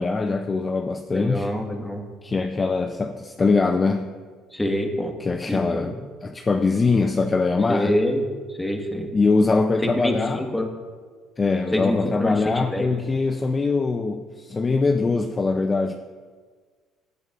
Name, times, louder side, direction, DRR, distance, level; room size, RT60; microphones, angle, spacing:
voice 1, 0.0-1.5 2.2-4.1 5.2-8.0 9.1-10.5 11.4-15.9, left 3 dB, 30° left, 7 dB, 0.5 m, -22 dB
voice 2, 1.1-2.0 4.5-5.1 5.5-5.9 7.7-8.2 8.6-9.1 9.8-10.7 11.7-13.0, left 1 dB, 10° left, 3 dB, 1.5 m, -26 dB
15.5 x 7.7 x 2.5 m, 1.5 s
supercardioid pair, 70°, 0 cm